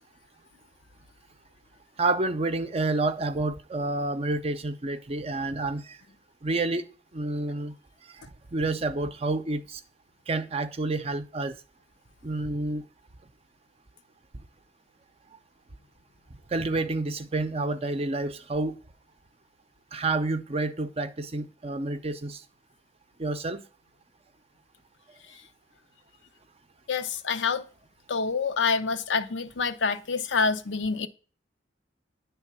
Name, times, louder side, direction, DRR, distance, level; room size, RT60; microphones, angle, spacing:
voice 1, 2.0-5.8 6.4-6.8 7.1-7.7 8.5-9.8 10.3-11.5 12.2-12.8 16.5-18.8 19.9-22.4 23.2-23.6, right 2 dB, 35° right, 0.5 m, -29 dB
voice 2, 26.9-27.6 28.1-31.1, left 5 dB, 85° left, 0.6 m, -27 dB
9.8 x 3.4 x 5.9 m
head